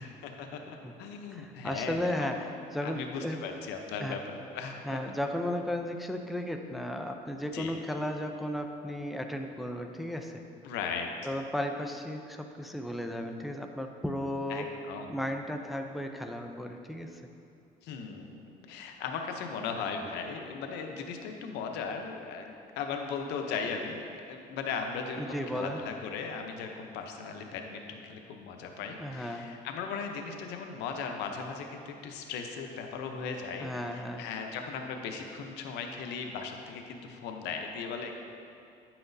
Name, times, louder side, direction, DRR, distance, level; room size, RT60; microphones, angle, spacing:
voice 1, 0.0-2.3 2.8-4.8 7.5-7.8 10.6-11.1 14.5-15.1 17.8-38.2, left 5 dB, 90° left, 4 dB, 0.7 m, -37 dB
voice 2, 1.3-3.4 4.0-4.2 4.8-10.4 11.2-14.7 15.1-17.2 25.1-25.8 29.0-29.5 33.6-34.3, left 1 dB, ahead, 4 dB, 0.4 m, -35 dB
9.5 x 5.9 x 2.7 m, 2.5 s
cardioid pair, 110°, 17 cm